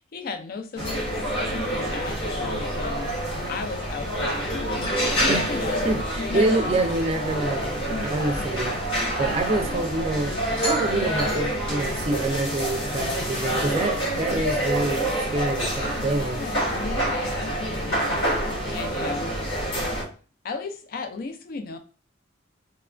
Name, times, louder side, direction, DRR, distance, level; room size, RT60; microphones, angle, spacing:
voice 1, 0.1-3.1 3.4-5.9 6.2-6.8 7.9-8.5 15.8-18.2 18.7-19.3 20.4-21.8, left 4 dB, 50° left, 8 dB, 0.4 m, -35 dB
sound 1, 0.8-20.0, equal, 70° left, 1.1 m, -27 dB
voice 2, 5.8-8.8 9.2-10.4 10.6-16.4, right 2 dB, 30° right, 5 dB, 0.4 m, -27 dB
3.0 x 2.2 x 2.4 m, 0.38 s
head